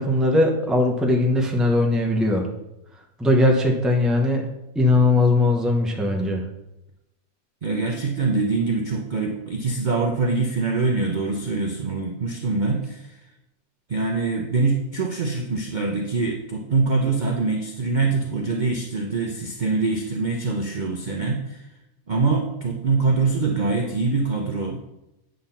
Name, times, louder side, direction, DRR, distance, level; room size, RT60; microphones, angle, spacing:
voice 1, 0.0-2.5 3.2-4.4 4.7-6.4, left 2 dB, ahead, 1 dB, 0.8 m, -19 dB
voice 2, 7.6-13.2 13.9-21.7 22.1-24.8, right 3 dB, 45° right, 0 dB, 0.7 m, -24 dB
9.0 x 3.9 x 5.6 m, 0.91 s
omnidirectional pair, 1.5 m